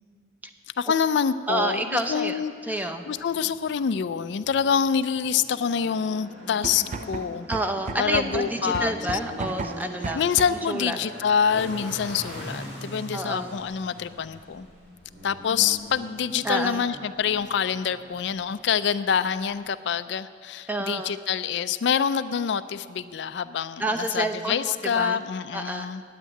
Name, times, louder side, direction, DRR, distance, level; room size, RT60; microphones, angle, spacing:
voice 1, 0.8-7.5 8.0-8.9 10.1-14.7 15.2-26.0, left 7 dB, 70° left, 13 dB, 0.4 m, -26 dB
voice 2, 1.5-3.0 7.5-10.2 10.7-11.0 13.1-13.5 16.4-16.8 20.7-21.1 23.8-25.2 25.5-25.9, right 1 dB, 10° right, 6 dB, 0.7 m, -29 dB
sound 1, 3.0-19.7, equal, 80° right, 4.2 m, -42 dB
sound 2, 6.6-10.7, right 4 dB, 45° right, 0.4 m, -35 dB
9.1 x 8.8 x 9.3 m, 2.1 s
head